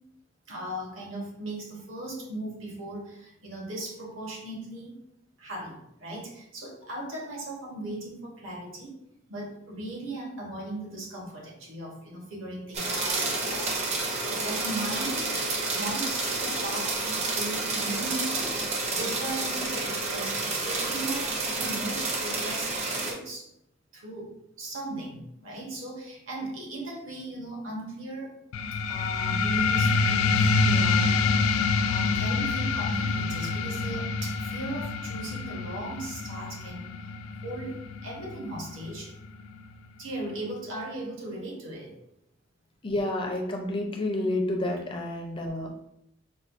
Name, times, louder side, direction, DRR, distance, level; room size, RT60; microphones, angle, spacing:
voice 1, 0.5-4.9 5.4-8.9 9.3-15.4 15.7-23.5 23.9-28.3 28.8-36.9 37.4-37.7 38.0-39.1 40.0-42.0, right 1 dB, 75° right, -2 dB, 1.0 m, -38 dB
sound 1, 12.7-23.1, right 3 dB, 35° right, 0.5 m, -30 dB
sound 2, 28.5-39.6, left 4 dB, 85° left, 0.3 m, -27 dB
voice 2, 42.8-45.9, left 1 dB, 25° left, 1 dB, 0.4 m, -30 dB
4.3 x 2.2 x 2.4 m, 0.79 s
head